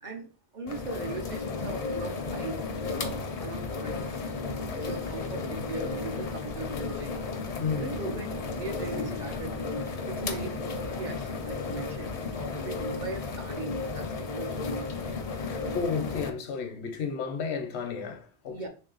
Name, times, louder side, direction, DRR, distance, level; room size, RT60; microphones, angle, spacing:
voice 1, 0.0-2.6 2.8-4.1 4.7-7.2 7.8-9.5 10.0-14.8 18.5-18.7, right 3 dB, 55° right, 0.6 m, -40 dB
sound 1, 0.7-16.3, left 3 dB, 50° left, 0.4 m, -33 dB
voice 2, 15.5-18.7, left 5 dB, 90° left, 1.0 m, -32 dB
3.1 x 2.7 x 3.8 m
omnidirectional pair, 1.1 m